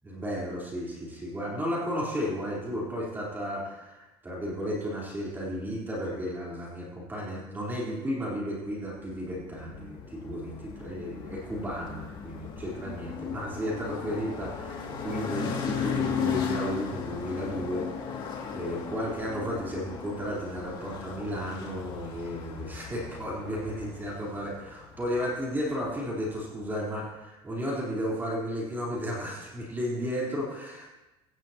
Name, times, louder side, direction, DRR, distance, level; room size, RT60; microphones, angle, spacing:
voice 1, 0.0-30.9, equal, 15° right, -5 dB, 4.0 m, -33 dB
sound 1, 8.9-26.4, left 6 dB, 35° left, 2.5 m, -37 dB
17.0 x 15.5 x 3.0 m, 1.0 s
cardioid pair, 135°, 13 cm